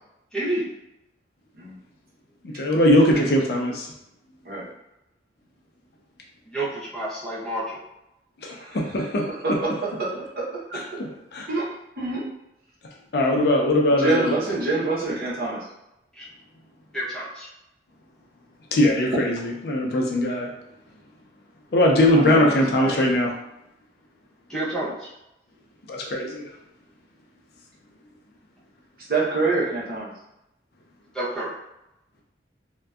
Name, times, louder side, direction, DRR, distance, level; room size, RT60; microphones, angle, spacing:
voice 1, 0.3-0.7 6.5-7.8 16.2-16.3 16.9-17.5 24.5-25.0 31.1-31.5, right 1 dB, 5° left, -9 dB, 0.6 m, -29 dB
voice 2, 2.4-3.9 8.4-9.2 11.0-11.5 13.1-14.3 18.7-20.5 21.7-23.3 25.9-26.4, left 1 dB, 60° left, -1 dB, 0.4 m, -20 dB
voice 3, 9.4-10.8 11.5-11.7 12.0-12.3 14.0-15.6 22.1-23.1 29.1-30.1, right 3 dB, 55° right, -6 dB, 0.7 m, -26 dB
2.6 x 2.1 x 2.3 m, 0.87 s
head